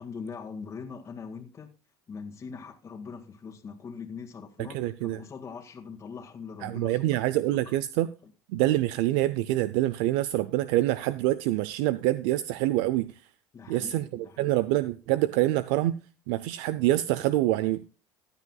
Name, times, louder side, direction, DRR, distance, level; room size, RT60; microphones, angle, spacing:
voice 1, 0.0-1.7 2.1-7.3 8.2-8.3 13.5-14.5, left 5 dB, 35° left, 1.8 m, -42 dB
voice 2, 4.6-5.2 6.6-8.1 8.5-13.1 13.7-16.0 16.3-17.9, right 15 dB, 80° right, 0.6 m, -26 dB
15.5 x 9.9 x 2.3 m
supercardioid pair, 105°, 9 cm